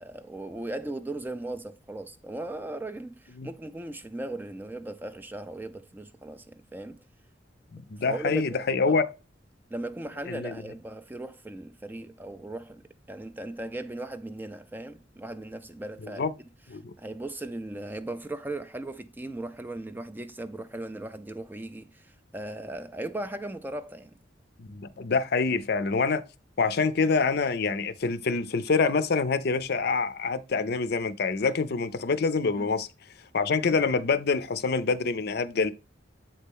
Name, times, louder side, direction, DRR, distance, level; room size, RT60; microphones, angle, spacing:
voice 1, 0.0-7.0 8.0-9.0 9.7-12.8 13.1-16.3 17.0-24.1 32.6-32.7, right 1 dB, 10° right, 0.3 m, -37 dB
voice 2, 7.7-9.1 10.3-10.6 16.2-16.3 16.7-16.9 24.6-26.2 26.6-32.9 33.3-35.7, left 4 dB, 55° left, 0.5 m, -26 dB
7.4 x 4.1 x 3.6 m
head